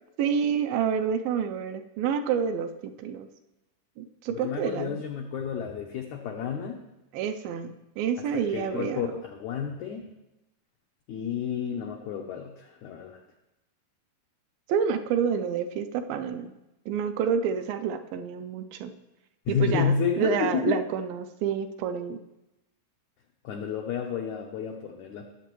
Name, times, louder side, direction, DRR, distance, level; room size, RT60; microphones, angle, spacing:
voice 1, 0.2-3.3 4.0-5.0 7.1-9.0 14.7-16.5 16.9-18.9 19.5-22.2, right 7 dB, 80° right, 8 dB, 2.2 m, -28 dB
voice 2, 4.3-6.8 8.3-10.1 11.1-13.2 19.5-20.8 23.4-25.2, left 7 dB, 90° left, 2 dB, 1.6 m, -31 dB
19.0 x 7.5 x 3.1 m, 0.96 s
omnidirectional pair, 4.3 m